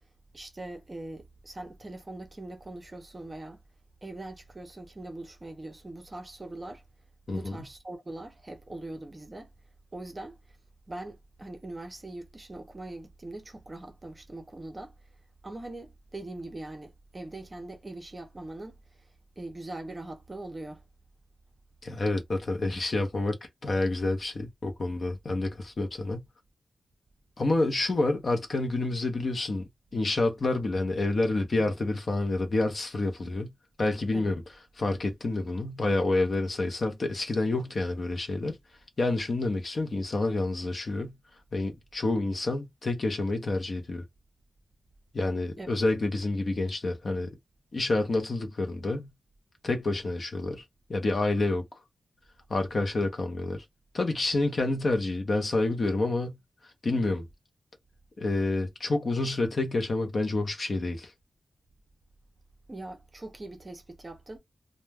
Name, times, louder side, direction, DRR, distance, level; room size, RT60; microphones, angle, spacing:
voice 1, 0.3-3.6 4.0-6.8 7.3-9.5 9.9-10.4 10.9-14.9 15.4-18.8 19.4-20.8 34.1-34.3 45.6-45.7 62.7-64.4, right 2 dB, 25° right, 0.5 m, -41 dB
voice 2, 21.8-23.4 23.6-26.3 27.4-33.5 33.8-34.4 34.8-38.6 39.0-41.2 41.5-44.0 45.1-47.3 47.7-49.1 49.6-50.6 50.9-51.6 52.5-53.6 53.9-56.4 56.8-57.3 58.2-61.1, left 2 dB, 45° left, 0.6 m, -28 dB
2.2 x 2.1 x 3.3 m
wide cardioid pair, 165°, 0 cm